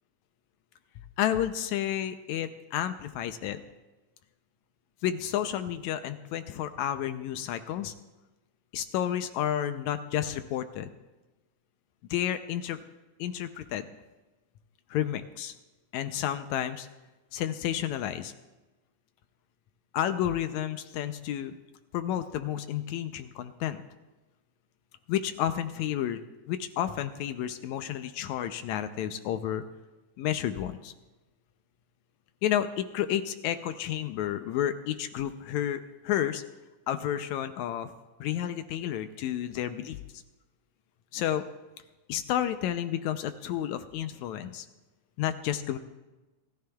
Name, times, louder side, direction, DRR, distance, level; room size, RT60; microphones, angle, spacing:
voice 1, 1.2-3.6 5.0-7.9 8.7-10.9 12.1-12.8 13.2-13.9 14.9-15.5 15.9-16.9 17.3-18.3 19.9-21.6 21.9-23.8 25.1-29.6 30.2-30.9 32.4-36.4 36.9-38.0 38.2-40.2 41.1-41.4 42.1-44.7 45.2-45.8, left 11 dB, 80° left, 9 dB, 1.9 m, -31 dB
27.0 x 14.0 x 2.3 m, 1.1 s
omnidirectional pair, 3.5 m